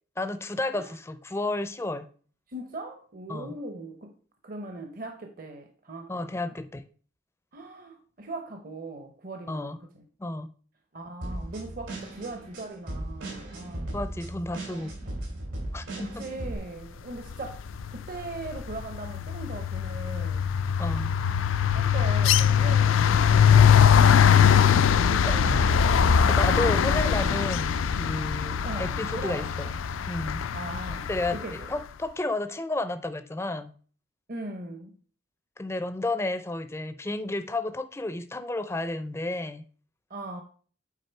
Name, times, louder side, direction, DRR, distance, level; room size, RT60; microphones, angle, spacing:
voice 1, 0.2-2.1 3.3-3.5 6.1-6.8 9.5-9.8 10.2-10.5 13.9-14.9 15.7-16.2 20.8-21.1 25.2-29.7 30.1-30.4 31.1-33.7 35.6-39.7, left 2 dB, 15° left, 0.4 m, -32 dB
voice 2, 2.5-4.1 4.4-6.4 7.5-10.0 10.9-13.9 14.7-15.2 16.0-17.6 17.9-20.4 21.7-23.7 24.1-24.4 24.9-25.7 26.2-27.1 28.6-29.5 30.5-31.7 34.3-34.9 40.1-40.4, right 2 dB, 45° right, 0.7 m, -39 dB
sound 1, 11.2-16.6, right 1 dB, 85° right, 3.1 m, -37 dB
sound 2, 17.6-18.0 18.2-31.4, left 7 dB, 85° left, 0.4 m, -21 dB
8.4 x 3.7 x 4.5 m
head